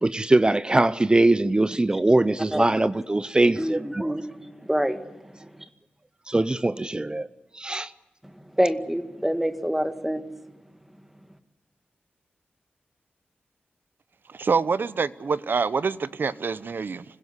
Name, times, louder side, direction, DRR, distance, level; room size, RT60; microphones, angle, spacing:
voice 1, 0.0-4.1 6.3-7.3 7.6-7.9, right 2 dB, 25° right, 0.7 m, -22 dB
voice 2, 3.5-5.7 8.2-10.3, equal, 5° right, 1.7 m, -27 dB
voice 3, 14.3-17.0, right 5 dB, 60° right, 0.7 m, -26 dB
25.5 x 16.0 x 8.2 m
cardioid pair, 60°, 4 cm